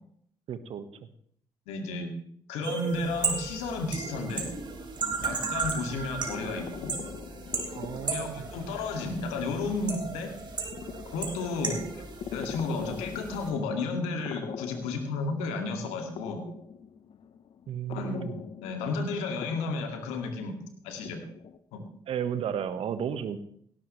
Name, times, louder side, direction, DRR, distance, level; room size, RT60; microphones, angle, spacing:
voice 1, 0.5-0.9 7.7-8.5 11.6-11.8 17.7-18.4 22.1-23.4, right 8 dB, 60° right, 11 dB, 1.4 m, -33 dB
voice 2, 1.7-2.1 2.5-4.5 5.2-6.9 8.1-10.3 11.1-12.0 12.3-16.4 17.9-18.3 18.6-20.6 20.8-21.2 21.7-21.8, left 3 dB, 80° left, 5 dB, 2.3 m, -32 dB
sound 1, 2.6-13.5, right 4 dB, 45° right, 3.5 m, -35 dB
sound 2, 6.1-21.6, left 7 dB, 55° left, 1.0 m, -44 dB
17.5 x 12.5 x 3.3 m, 0.64 s
hypercardioid pair, 50°, 11 cm